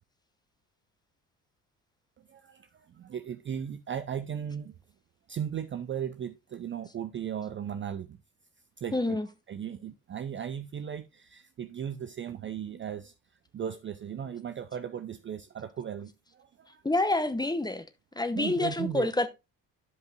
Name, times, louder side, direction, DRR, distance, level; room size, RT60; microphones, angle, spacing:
voice 1, 2.3-4.7 5.3-8.2 8.8-9.2 9.5-13.1 13.5-16.8 18.3-19.1, right 8 dB, 25° right, 0.5 m, -37 dB
voice 2, 8.9-9.3 16.8-17.9 18.2-19.3, left 2 dB, 10° left, 0.8 m, -27 dB
12.5 x 5.2 x 2.5 m
figure-of-eight pair, 55°, 47 cm